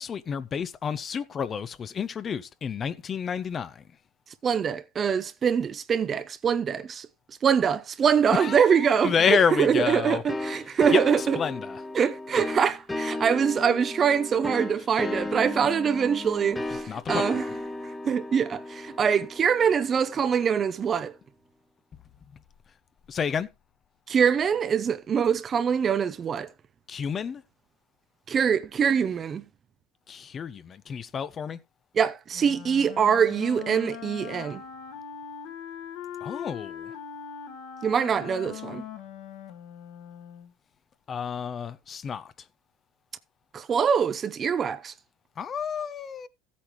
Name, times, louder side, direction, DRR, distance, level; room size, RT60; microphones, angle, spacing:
voice 1, 0.0-3.8 8.3-10.2 10.9-11.8 16.9-17.5 23.1-23.5 26.9-27.4 30.1-31.6 36.2-36.9 41.1-42.3 45.4-46.3, left 7 dB, 30° left, 0.7 m, -29 dB
voice 2, 4.4-7.1 7.4-9.1 9.5-11.4 11.9-17.4 17.8-21.1 24.1-26.5 28.3-29.4 31.9-34.6 37.8-38.8 43.5-44.9, right 7 dB, 30° right, 0.7 m, -24 dB
sound 1, 10.3-20.8, left 2 dB, 10° left, 1.1 m, -35 dB
Wind instrument woodwind instrument, 32.3-40.5, left 8 dB, 65° left, 1.8 m, -41 dB
14.5 x 8.4 x 3.0 m
supercardioid pair, 115°, 0 cm